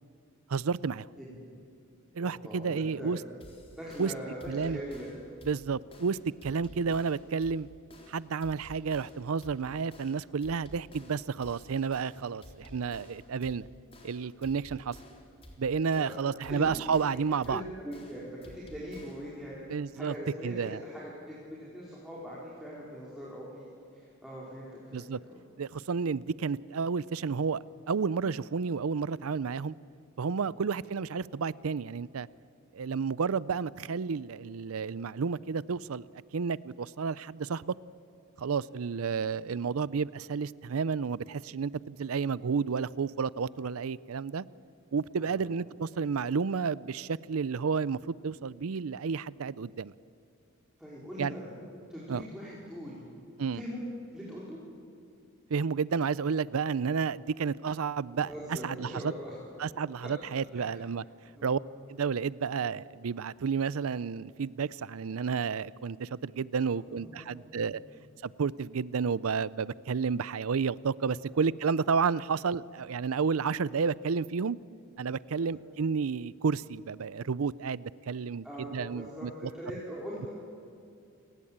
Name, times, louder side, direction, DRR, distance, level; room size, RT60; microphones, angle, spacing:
voice 1, 0.5-1.1 2.1-3.2 4.0-4.1 4.5-4.8 5.5-7.7 8.1-13.7 14.0-15.0 15.6-17.6 19.7-20.1 20.4-20.8 24.9-25.2 25.6-29.7 30.2-32.3 32.7-36.1 36.3-37.7 38.4-44.4 44.9-49.9 51.2-51.3 52.1-52.2 53.4-53.6 55.5-58.3 58.6-59.1 59.6-61.0 61.4-61.6 61.9-67.8 68.2-74.6 75.0-79.5, right 5 dB, 75° right, 0.5 m, -31 dB
voice 2, 2.2-3.3 3.8-5.4 13.4-13.7 15.9-16.1 16.5-16.8 17.5-18.3 18.5-19.6 20.0-25.4 30.3-30.6 38.8-39.3 45.2-45.5 50.8-51.5 51.9-53.0 53.5-53.8 54.1-54.6 58.2-59.4 60.0-60.1 60.5-60.8 61.3-61.7 66.7-67.7 75.4-75.6 78.4-80.3, equal, ahead, 4.5 m, -42 dB
sound 1, 3.4-19.4, left 1 dB, 25° left, 3.7 m, -53 dB
28.0 x 19.5 x 8.8 m
head